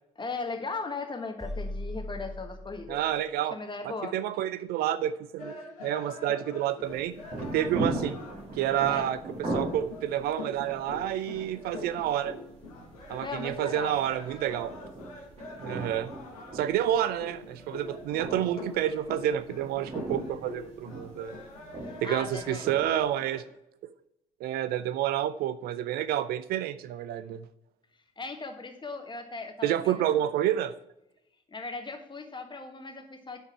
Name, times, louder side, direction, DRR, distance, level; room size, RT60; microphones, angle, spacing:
voice 1, 0.1-3.0 3.5-4.1 8.9-9.1 13.2-14.0 21.9-22.7 28.2-30.0 31.5-33.4, left 4 dB, 25° left, 5 dB, 1.5 m, -38 dB
sound 1, 1.4-3.2, left 1 dB, ahead, 1.3 m, -38 dB
voice 2, 2.9-3.6 4.1-5.5 5.8-7.2 7.4-8.2 8.6-12.3 13.1-14.7 15.6-16.1 16.5-21.4 22.0-23.4 24.4-27.4 29.6-30.7, right 11 dB, 60° right, 15 dB, 0.4 m, -29 dB
sound 2, 5.4-23.5, left 2 dB, 80° left, 1.4 m, -44 dB
sound 3, 6.8-23.1, right 2 dB, 40° right, 2.3 m, -39 dB
9.9 x 4.5 x 4.5 m, 0.86 s
figure-of-eight pair, 45°, 18 cm